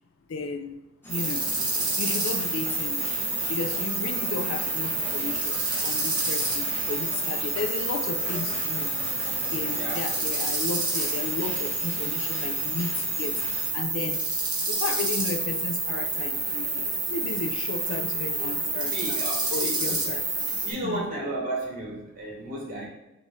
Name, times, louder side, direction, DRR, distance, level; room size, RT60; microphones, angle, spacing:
voice 1, 0.3-0.8 1.1-1.5 2.0-3.2 3.5-8.9 9.4-13.4 13.7-14.3 14.6-19.2 19.5-20.5 20.8-21.1, left 4 dB, 75° left, 6 dB, 0.4 m, -34 dB
sound 1, 1.0-13.7, equal, 10° left, 1.0 m, -41 dB
sound 2, 1.1-20.7, right 2 dB, 20° right, 1.0 m, -28 dB
voice 2, 18.9-20.0 20.6-22.9, right 1 dB, 45° right, -2 dB, 1.3 m, -33 dB
5.3 x 2.7 x 3.1 m, 0.98 s
head